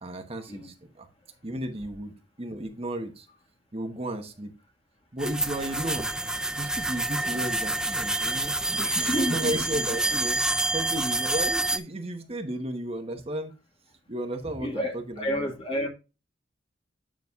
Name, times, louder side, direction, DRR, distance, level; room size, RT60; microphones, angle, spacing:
voice 1, 0.0-1.1 1.4-3.3 3.7-4.5 5.1-6.1 6.6-8.5 8.9-10.4 10.7-13.5 14.1-15.5, right 1 dB, 35° right, 1.1 m, -33 dB
sound 1, 5.2-11.8, right 2 dB, 5° right, 0.5 m, -28 dB
voice 2, 8.7-9.6 14.6-15.9, equal, 30° left, 1.8 m, -30 dB
9.5 x 6.2 x 2.4 m
head